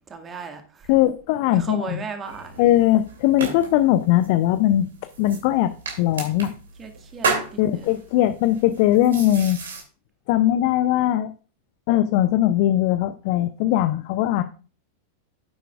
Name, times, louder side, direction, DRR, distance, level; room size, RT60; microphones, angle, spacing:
voice 1, 0.1-0.9 1.5-2.5 6.8-8.0, right 5 dB, 20° right, 1.7 m, -36 dB
voice 2, 0.9-2.0 2.6-4.9 5.2-6.5 7.6-9.6 10.3-11.3 11.9-14.4, left 13 dB, 45° left, 0.5 m, -20 dB
sound 1, 2.2-9.8, right 4 dB, 65° right, 2.6 m, -33 dB
10.5 x 9.1 x 2.4 m
figure-of-eight pair, 90°, 0 cm